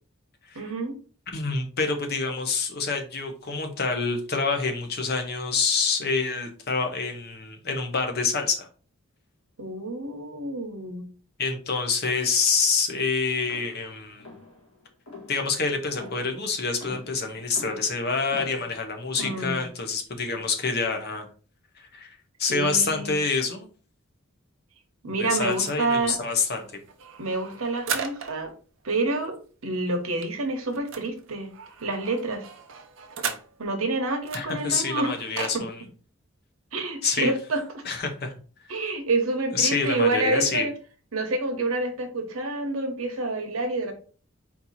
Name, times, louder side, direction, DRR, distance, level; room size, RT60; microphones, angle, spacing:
voice 1, 0.5-1.0 9.6-11.0 19.2-19.6 22.5-23.2 25.0-26.2 27.2-28.5 28.8-29.4 29.6-31.5 31.8-32.4 33.6-35.2 35.5-35.6 36.7-37.6 38.7-40.7 41.1-43.9, right 2 dB, 80° right, 5 dB, 1.1 m, -28 dB
voice 2, 1.3-8.7 11.4-14.3 15.3-21.3 21.8-23.7 25.2-26.6 34.3-35.8 37.0-37.3 37.8-38.3 39.5-40.7, left 4 dB, 50° left, 4 dB, 0.9 m, -27 dB
sound 1, 13.4-19.9, left 3 dB, 70° left, 1.8 m, -44 dB
sound 2, 25.5-28.5 28.9-29.0 29.2-29.4 29.6-33.8 34.2-35.6, right 6 dB, 60° right, 0.6 m, -37 dB
4.4 x 2.8 x 4.1 m, 0.39 s
head